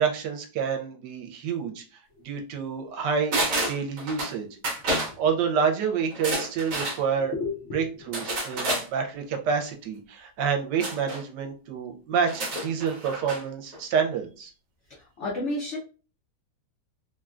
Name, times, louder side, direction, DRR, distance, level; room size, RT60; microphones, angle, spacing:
voice 1, 0.0-1.8 2.2-4.5 4.9-7.3 7.7-14.5, right 6 dB, 75° right, 4 dB, 1.2 m, -28 dB
sound 1, 3.3-4.3 4.6-5.1 6.1-7.0 8.1-8.9 10.8-11.2 12.2-13.4 13.7-13.8, right 1 dB, 55° right, 1.1 m, -29 dB
voice 2, 7.2-8.1 8.6-8.7 14.9-15.8, left 2 dB, 60° left, -4 dB, 0.7 m, -33 dB
3.5 x 2.2 x 2.4 m, 0.35 s
omnidirectional pair, 1.9 m